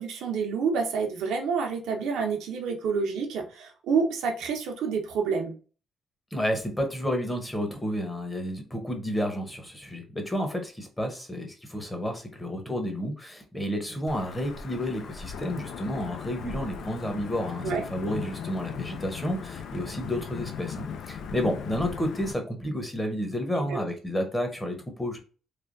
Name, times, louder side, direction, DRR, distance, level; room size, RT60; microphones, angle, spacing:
voice 1, 0.0-5.5 17.6-17.8 23.6-23.8, right 5 dB, 85° right, 3 dB, 0.7 m, -28 dB
voice 2, 6.3-25.2, equal, 10° left, 4 dB, 0.9 m, -31 dB
Wind / Thunder / Rain, 14.1-22.3, left 6 dB, 70° left, 0.4 m, -38 dB
3.2 x 2.2 x 2.5 m, 0.36 s
cardioid pair, 90°, 0 cm